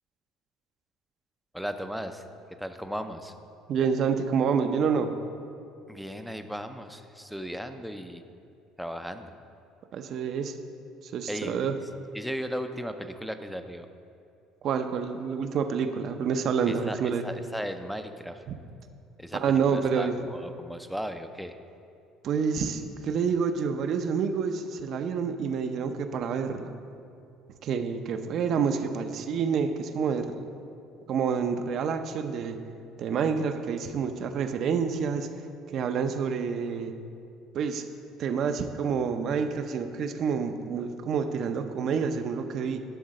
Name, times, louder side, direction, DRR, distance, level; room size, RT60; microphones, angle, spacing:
voice 1, 1.5-2.2 2.5-3.3 5.9-8.2 8.8-9.3 11.3-11.7 12.1-13.9 16.7-18.4 19.2-21.5, equal, ahead, 7 dB, 0.5 m, -36 dB
voice 2, 3.7-5.2 9.9-10.6 11.0-11.7 14.6-17.2 18.5-18.6 19.4-20.2 22.2-26.7 27.6-30.5 31.1-32.6 33.0-35.3 35.7-36.9 37.5-37.8 38.2-42.8, right 6 dB, 50° right, 8 dB, 0.6 m, -28 dB
11.5 x 3.9 x 6.4 m, 2.5 s
cardioid pair, 130°, 0 cm